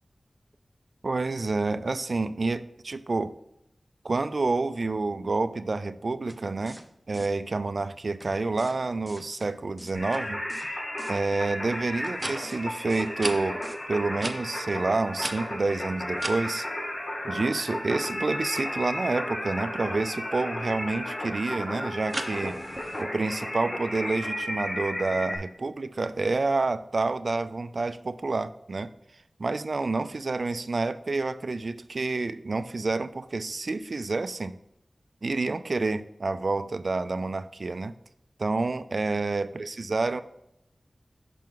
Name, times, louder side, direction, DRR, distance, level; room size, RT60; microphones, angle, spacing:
voice 1, 1.0-3.3 4.0-6.8 7.1-10.4 11.1-13.6 13.9-16.7 17.2-22.6 23.0-28.9 29.4-34.6 35.2-37.9 38.4-40.2, right 3 dB, 70° right, 12 dB, 0.4 m, -28 dB
sound 1, 6.3-6.4 6.7-6.8 7.1-7.3 8.2-8.3 8.6-8.8 9.1-9.5 9.8-10.2 10.5-10.7 11.0-11.1 12.0-12.1 12.4-12.6 12.9-13.3 13.6-13.8, equal, ahead, 0.9 m, -45 dB
Singing, 9.9-25.4, left 1 dB, 60° left, 1.9 m, -34 dB
sound 2, 11.3-11.4 12.1-12.3 13.2-13.4 14.2-14.4 15.2-16.4 22.1-23.0, right 2 dB, 40° right, 0.8 m, -34 dB
6.1 x 5.8 x 3.7 m, 0.83 s
wide cardioid pair, 50°, 0 cm